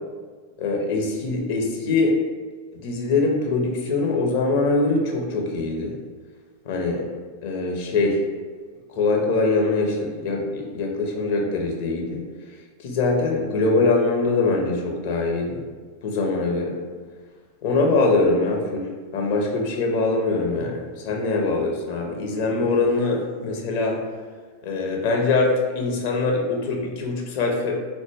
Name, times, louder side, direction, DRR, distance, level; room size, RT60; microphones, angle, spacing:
voice 1, 0.6-2.2 2.8-6.0 6.6-7.1 7.4-8.2 9.0-12.2 12.8-15.6 16.0-16.8 17.6-24.0 24.6-27.7, left 3 dB, 45° left, 0 dB, 0.6 m, -23 dB
3.9 x 2.1 x 3.2 m, 1.5 s
figure-of-eight pair, 90°, 0 cm